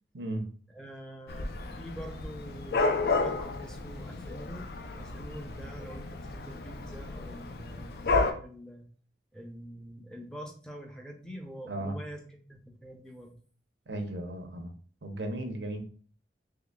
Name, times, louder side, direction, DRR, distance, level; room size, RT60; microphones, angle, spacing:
voice 1, 0.1-0.5 11.7-12.0 13.9-14.7 15.0-15.8, right 1 dB, 85° right, 5 dB, 0.7 m, -35 dB
voice 2, 0.7-4.7 5.0-8.9 9.3-13.3, equal, 5° left, 2 dB, 0.5 m, -45 dB
Dog / Cat, 1.3-8.3, left 3 dB, 60° left, 0.4 m, -32 dB
3.7 x 3.2 x 2.3 m, 0.43 s
head